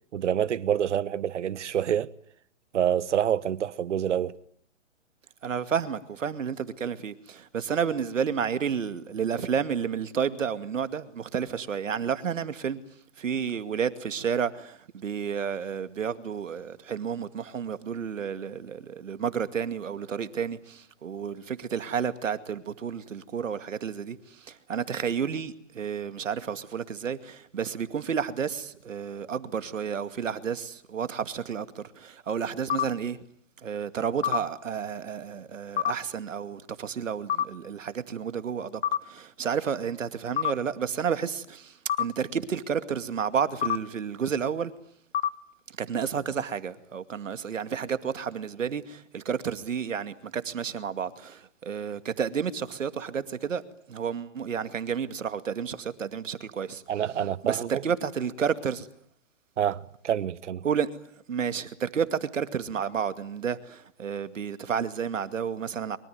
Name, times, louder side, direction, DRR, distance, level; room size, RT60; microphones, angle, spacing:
voice 1, 0.1-2.1 2.7-4.4 56.9-57.8 59.6-60.6, right 9 dB, 70° right, 1.4 m, -27 dB
voice 2, 5.4-12.8 13.2-33.2 33.6-44.7 45.8-53.6 53.9-56.8 57.4-58.9 60.6-60.9 61.3-66.0, right 7 dB, 85° right, 2.4 m, -31 dB
sound 1, 32.7-32.8 34.2-34.4 35.8-35.9 37.3-37.4 38.8-39.0 40.4-40.5 41.9-42.0 43.6-43.8 45.1-45.3, left 11 dB, 50° left, 1.5 m, -25 dB
25.0 x 24.5 x 9.5 m
hypercardioid pair, 155°, 37 cm